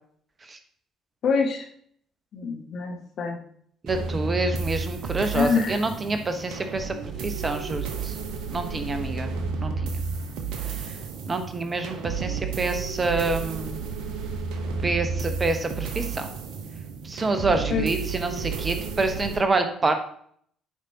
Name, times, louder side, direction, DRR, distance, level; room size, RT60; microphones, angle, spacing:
voice 1, 1.2-1.6 2.3-3.4 5.3-5.8 17.7-17.9, left 5 dB, 55° left, 3 dB, 1.3 m, -25 dB
voice 2, 3.8-8.2 8.5-9.3 9.6-9.9 10.6-10.9 11.3-13.8 14.8-16.3 17.0-19.9, right 3 dB, 30° right, 7 dB, 1.1 m, -27 dB
sound 1, 3.9-19.4, right 5 dB, 65° right, 1.0 m, -32 dB
11.0 x 5.2 x 2.9 m, 0.62 s
figure-of-eight pair, 50°, 0 cm